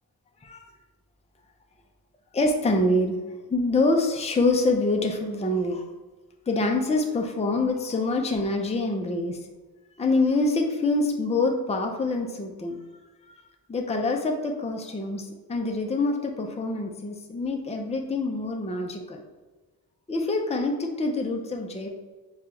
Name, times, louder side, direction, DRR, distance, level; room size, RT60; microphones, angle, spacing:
voice 1, 2.3-5.8 6.5-9.4 10.0-12.8 13.3-13.4 13.7-19.2 20.1-21.9, left 2 dB, 15° left, 3 dB, 0.4 m, -26 dB
6.5 x 2.3 x 2.9 m, 1.3 s
wide cardioid pair, 100°, 39 cm